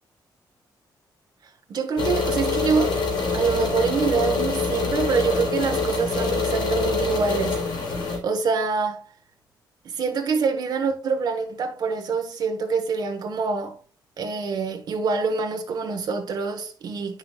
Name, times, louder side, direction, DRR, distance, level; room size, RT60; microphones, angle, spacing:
voice 1, 1.7-3.0 3.3-7.6 8.2-9.0 9.8-13.8 14.2-17.2, right 5 dB, 60° right, 1.2 m, -25 dB
sound 1, 2.0-8.2, left 4 dB, 80° left, 3.6 m, -25 dB
9.4 x 5.9 x 2.3 m
wide cardioid pair, 150°, 8 cm